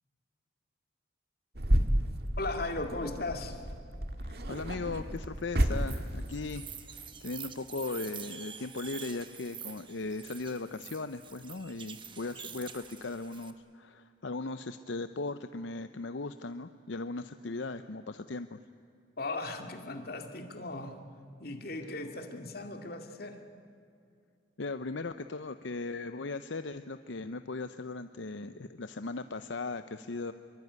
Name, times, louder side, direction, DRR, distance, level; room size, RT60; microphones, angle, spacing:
sound 1, 1.5-6.4, right 1 dB, 55° right, 1.7 m, -31 dB
voice 1, 2.4-3.6 19.2-21.0 21.4-23.4, left 2 dB, 50° left, 5 dB, 2.4 m, -37 dB
voice 2, 4.2-18.6 21.8-22.0 24.6-30.3, left 3 dB, 75° left, 10 dB, 0.7 m, -38 dB
sound 2, 5.9-13.5, right 8 dB, 25° right, 1.2 m, -47 dB
25.5 x 23.0 x 9.6 m, 2.4 s
head